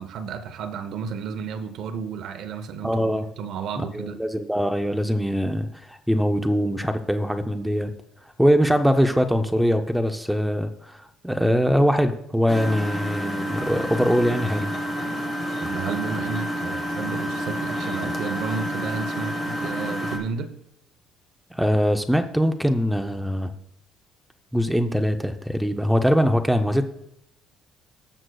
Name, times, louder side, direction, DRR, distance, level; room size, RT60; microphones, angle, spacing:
voice 1, 0.0-4.2 15.6-20.5, right 6 dB, 55° right, 0.7 m, -32 dB
voice 2, 2.8-3.3 3.8-7.9 8.4-14.7 21.5-23.5 24.5-26.9, equal, ahead, 0.5 m, -22 dB
Engine, 12.5-20.2, equal, 25° left, 1.4 m, -29 dB
17.5 x 6.3 x 2.3 m
cardioid pair, 180°, 0 cm